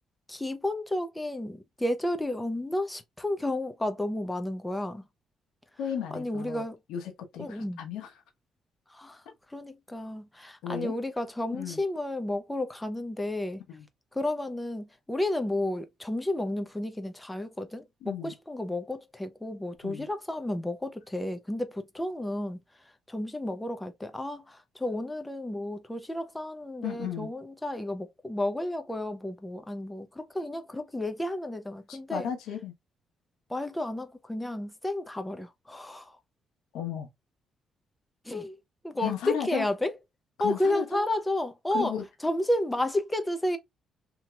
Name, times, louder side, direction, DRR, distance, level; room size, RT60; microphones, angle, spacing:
voice 1, 0.3-5.0 6.1-6.8 7.4-7.8 8.9-9.2 9.5-13.6 14.1-22.6 23.1-32.3 33.5-36.1 38.3-38.6 38.8-39.9 40.4-41.9 42.2-43.6, left 1 dB, 10° left, 0.6 m, -32 dB
voice 2, 5.8-6.6 6.9-8.1 10.6-10.9 11.5-11.8 13.7-13.9 18.0-18.3 19.8-20.1 26.8-27.3 31.9-32.7 36.7-37.1 39.0-39.7 40.4-41.0 41.7-42.0, left 8 dB, 90° left, 0.9 m, -34 dB
2.9 x 2.9 x 2.3 m
cardioid pair, 90°, 0 cm